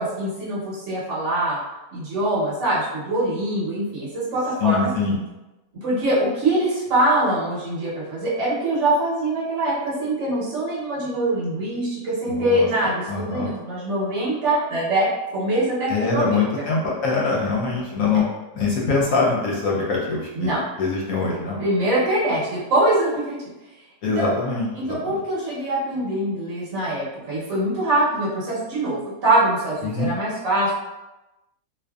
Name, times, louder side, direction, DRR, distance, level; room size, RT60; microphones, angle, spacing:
voice 1, 0.0-1.6 1.9-4.9 5.8-16.6 20.3-20.6 21.6-23.4 24.2-24.3 24.7-30.7, right 1 dB, 55° right, -9 dB, 1.1 m, -23 dB
voice 2, 4.6-5.2 12.3-12.7 13.1-13.5 15.9-18.2 18.5-21.6 24.0-25.2 29.8-30.1, left 4 dB, 70° left, -3 dB, 0.9 m, -23 dB
2.5 x 2.5 x 2.3 m, 1.0 s
omnidirectional pair, 1.7 m